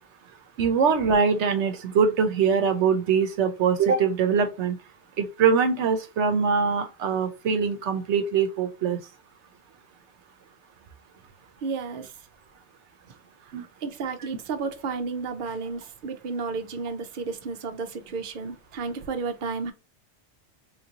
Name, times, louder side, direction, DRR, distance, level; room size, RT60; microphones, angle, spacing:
voice 1, 0.6-4.8 5.2-9.0 13.5-13.6, right 6 dB, 80° right, 0.9 m, -23 dB
voice 2, 11.6-12.1 13.5-19.7, right 4 dB, 55° right, 0.7 m, -32 dB
3.6 x 2.6 x 2.8 m
omnidirectional pair, 1.2 m